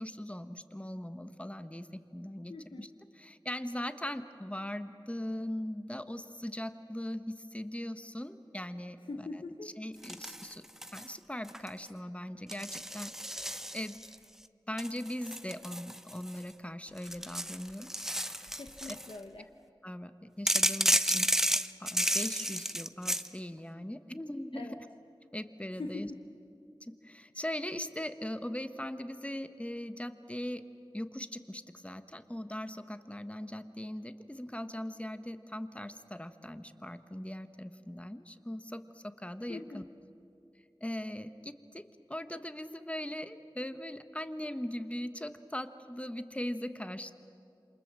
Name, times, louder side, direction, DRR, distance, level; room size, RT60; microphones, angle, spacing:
voice 1, 0.0-2.5 2.8-9.3 9.6-10.6 10.9-14.0 14.7-17.9 18.2-18.5 18.9-19.0 19.8-21.3 21.8-24.7 25.3-26.1 26.8-30.6 30.9-39.8 40.8-47.1, left 1 dB, 15° left, 10 dB, 1.3 m, -40 dB
voice 2, 2.5-2.9 9.1-9.7 18.5-19.4 24.5-24.8 25.8-26.1 39.5-39.8, left 3 dB, 85° left, 3 dB, 1.1 m, -42 dB
sound 1, 10.0-11.1 11.4-11.9 12.5-14.1 14.8-16.5 17.0-19.1 20.5-23.3, equal, 5° right, 0.7 m, -32 dB
28.0 x 26.5 x 7.5 m, 2.7 s
wide cardioid pair, 50°, 8 cm